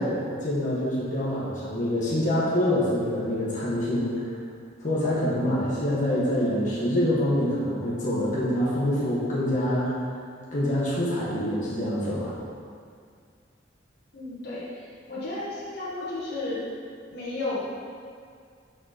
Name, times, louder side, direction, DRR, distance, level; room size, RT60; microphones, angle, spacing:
voice 1, 0.0-4.2 4.8-9.9 10.5-12.3, left 1 dB, 45° left, -8 dB, 1.8 m, -26 dB
voice 2, 14.1-16.6 17.1-17.6, left 2 dB, 60° left, -9 dB, 1.7 m, -33 dB
6.4 x 6.3 x 4.3 m, 2.2 s
head